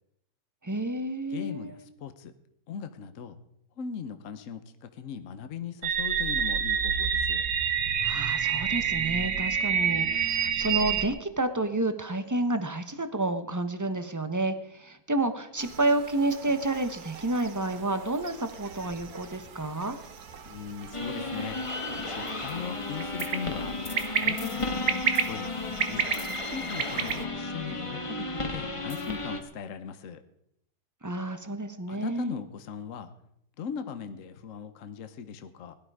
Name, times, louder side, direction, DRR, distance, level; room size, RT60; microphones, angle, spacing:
voice 1, 0.6-1.8 8.0-20.0 31.0-32.4, right 2 dB, 15° right, 10 dB, 0.8 m, -30 dB
voice 2, 1.3-2.3 2.7-3.3 3.8-7.4 20.5-21.6 22.0-23.8 24.2-26.1 26.5-30.2 31.9-33.1 33.6-35.8, left 7 dB, 55° left, 9 dB, 1.2 m, -39 dB
sound 1, 5.8-11.1, right 7 dB, 80° right, 1.8 m, -27 dB
sound 2, 15.6-27.3, right 6 dB, 60° right, 1.5 m, -35 dB
sound 3, 20.9-29.4, left 2 dB, 20° left, 1.2 m, -34 dB
17.0 x 12.0 x 4.8 m, 0.73 s
omnidirectional pair, 1.8 m